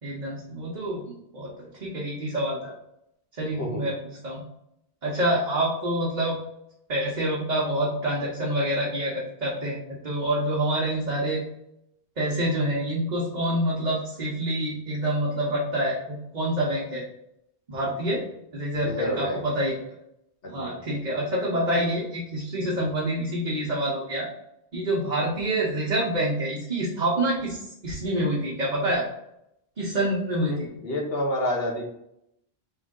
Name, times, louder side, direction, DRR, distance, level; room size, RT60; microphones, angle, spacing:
voice 1, 0.0-1.0 1.3-2.7 3.4-3.9 4.2-4.4 5.0-6.4 6.9-9.1 9.4-11.4 12.2-17.0 17.7-18.2 18.5-19.8 20.5-24.3 24.7-29.0 29.8-30.5, right 1 dB, 45° right, -4 dB, 0.9 m, -27 dB
voice 2, 3.5-3.9 18.8-19.5 20.4-20.8 30.5-31.8, left 1 dB, 70° left, 0 dB, 1.1 m, -29 dB
3.7 x 3.2 x 3.6 m, 0.79 s
omnidirectional pair, 1.0 m